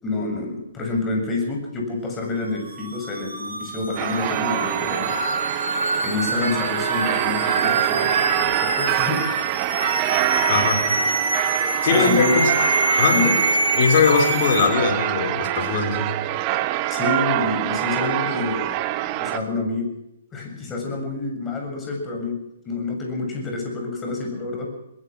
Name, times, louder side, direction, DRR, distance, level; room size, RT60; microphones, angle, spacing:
voice 1, 0.0-5.2 6.0-9.3 11.9-12.4 13.1-13.4 16.9-18.8 19.1-19.9 20.3-22.4 22.6-24.7, left 3 dB, 15° left, 2 dB, 7.2 m, -27 dB
sound 1, 2.4-14.7, right 2 dB, 85° right, 5.5 m, -25 dB
sound 2, 4.0-19.4, right 15 dB, 30° right, 1.3 m, -25 dB
voice 2, 10.5-10.8 11.8-12.5 13.0-13.2 13.8-16.1, left 5 dB, 45° left, 2 dB, 5.5 m, -20 dB
21.5 x 21.0 x 6.2 m, 0.84 s
figure-of-eight pair, 125°, 0 cm